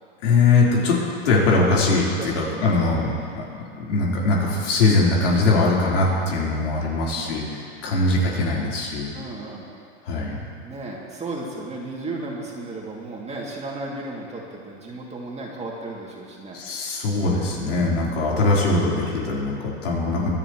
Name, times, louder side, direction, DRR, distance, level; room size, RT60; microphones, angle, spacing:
voice 1, 0.2-1.0 1.2-3.4 3.9-9.1 10.0-10.4 16.5-20.3, left 3 dB, 75° left, -5 dB, 4.1 m, -21 dB
voice 2, 2.2-2.8 5.3-5.7 6.9-7.3 9.1-9.7 10.6-16.6, right 2 dB, 20° right, -3 dB, 2.6 m, -35 dB
25.5 x 11.0 x 3.2 m, 2.3 s
hypercardioid pair, 110°, 36 cm